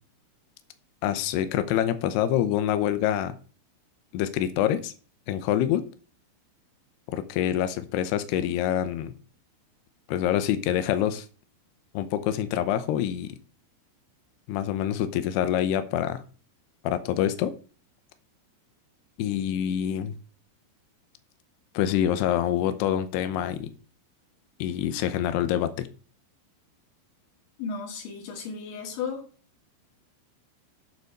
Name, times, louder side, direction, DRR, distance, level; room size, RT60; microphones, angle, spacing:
voice 1, 1.0-3.4 4.1-4.9 5.3-5.9 7.1-9.1 10.1-11.3 11.9-13.4 14.5-16.2 16.8-17.5 19.2-20.2 21.7-23.7 24.6-25.9, left 11 dB, 85° left, 11 dB, 2.4 m, -26 dB
voice 2, 27.6-29.3, left 5 dB, 65° left, 3 dB, 4.3 m, -34 dB
9.6 x 7.0 x 4.7 m, 0.38 s
omnidirectional pair, 5.8 m